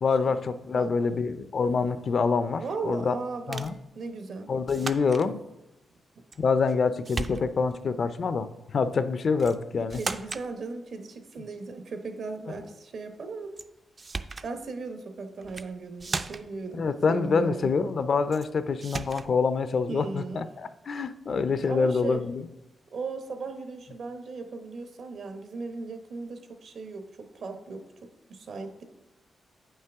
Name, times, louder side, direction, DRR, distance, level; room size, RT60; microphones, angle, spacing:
voice 1, 0.0-3.1 3.5-3.7 4.5-5.4 6.4-10.0 16.7-22.4, left 4 dB, 50° left, 12 dB, 0.4 m, -26 dB
voice 2, 0.7-1.1 2.6-4.5 6.2-6.3 9.9-13.5 14.4-17.8 19.9-20.4 21.7-22.3 22.9-28.8, right 4 dB, 65° right, 6 dB, 0.9 m, -37 dB
sound 1, 3.5-3.8 4.7-5.3 6.3-6.8 7.0-7.7 9.4-9.6 9.9-10.5 13.6-13.7 14.0-14.5 15.4-15.7 16.0-16.6 18.3-18.5 18.8-19.3, right 4 dB, 35° right, 0.3 m, -36 dB
9.0 x 5.5 x 3.5 m, 0.95 s
cardioid pair, 110°, 0 cm